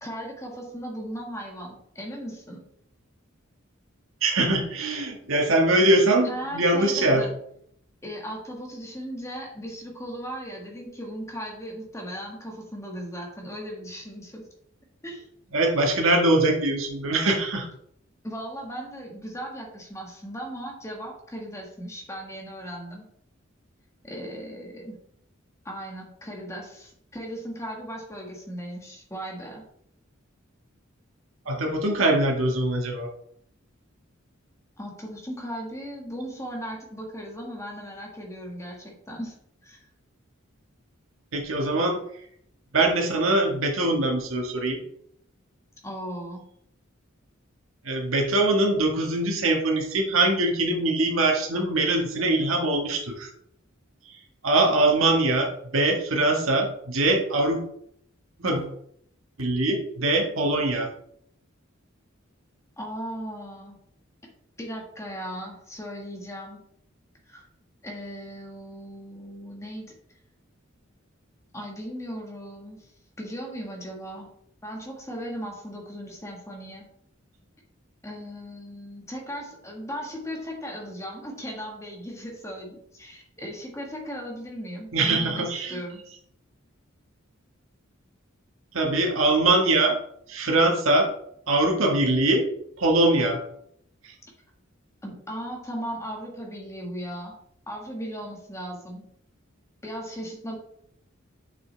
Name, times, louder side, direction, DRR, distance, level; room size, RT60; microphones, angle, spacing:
voice 1, 0.0-2.6 6.2-7.4 8.0-14.5 15.0-15.3 18.2-23.1 24.0-25.0 25.7-29.6 34.8-39.3 39.6-39.8 45.8-46.5 62.8-63.8 64.6-66.6 67.3-67.5 67.8-69.9 71.5-72.9 73.2-74.3 74.6-76.9 78.0-86.1 95.0-97.4 97.7-99.1 99.8-100.6, equal, 15° left, 0 dB, 1.6 m, -37 dB
voice 2, 4.2-7.2 15.5-17.7 31.5-33.1 41.3-42.0 42.7-44.8 47.9-53.3 54.4-57.6 58.4-58.7 59.4-60.9 84.9-85.8 88.7-90.0 90.3-91.1 91.5-92.4 92.8-93.4, right 2 dB, 90° right, 1 dB, 1.6 m, -22 dB
7.2 x 5.9 x 3.4 m, 0.69 s
head